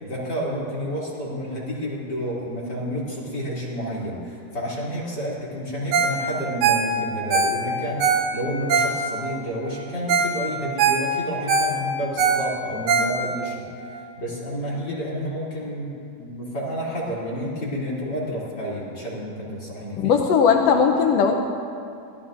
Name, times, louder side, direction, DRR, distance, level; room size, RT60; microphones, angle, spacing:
voice 1, 0.0-13.6 13.9-15.9 16.2-20.1, equal, 30° left, -6 dB, 3.2 m, -30 dB
Ringtone, 5.9-6.2 6.5-9.4 9.8-9.9 10.1-10.4 10.6-13.5 14.0-14.1, right 5 dB, 70° right, 2.3 m, -22 dB
voice 2, 20.0-21.4, left 6 dB, 85° left, 3 dB, 1.4 m, -18 dB
23.5 x 16.5 x 2.5 m, 2.5 s
omnidirectional pair, 3.8 m